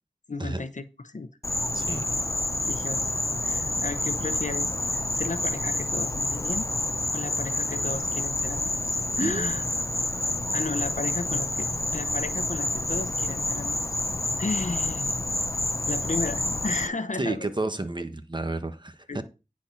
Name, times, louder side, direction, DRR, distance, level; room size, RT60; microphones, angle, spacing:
voice 1, 0.3-1.3 2.6-3.1 3.4-6.7 7.1-9.6 10.5-13.9 14.4-15.2 15.9-17.5 19.1-19.2, left 3 dB, 60° left, 0.8 m, -34 dB
Insect, 1.4-16.9, left 2 dB, 20° left, 0.6 m, -28 dB
voice 2, 1.7-2.1 9.2-9.5 17.2-19.2, right 2 dB, 35° right, 1.2 m, -31 dB
10.0 x 4.4 x 5.6 m
wide cardioid pair, 45°, 14 cm